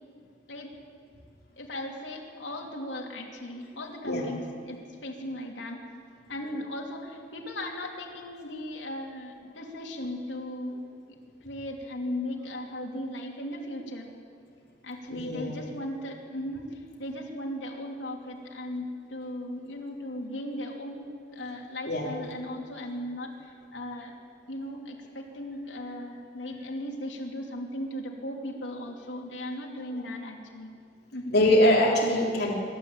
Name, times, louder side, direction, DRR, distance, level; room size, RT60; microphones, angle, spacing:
voice 1, 1.6-5.8 6.3-10.8 11.4-14.1 14.8-24.1 24.5-30.7 31.1-31.4, left 1 dB, 85° left, 0 dB, 3.2 m, -37 dB
voice 2, 15.1-15.5 21.9-22.3 31.3-32.5, left 1 dB, 60° left, -2 dB, 3.7 m, -23 dB
25.0 x 12.5 x 8.8 m, 2.2 s
head